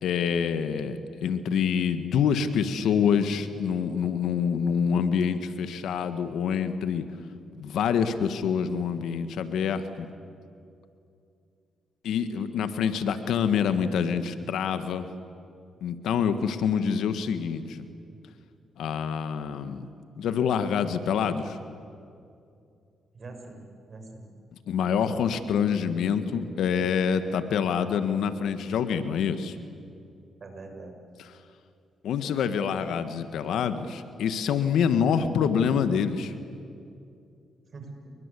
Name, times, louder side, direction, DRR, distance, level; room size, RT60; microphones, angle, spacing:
voice 1, 0.0-7.0 7.6-10.1 12.0-15.1 15.8-17.9 18.8-19.9 20.2-21.6 24.7-29.5 32.0-36.3, left 7 dB, 80° left, 10 dB, 1.7 m, -26 dB
voice 2, 23.1-24.3 30.4-31.0 37.7-38.1, right 3 dB, 45° right, 4 dB, 6.4 m, -43 dB
30.0 x 22.5 x 8.5 m, 2.5 s
cardioid pair, 75°, 0 cm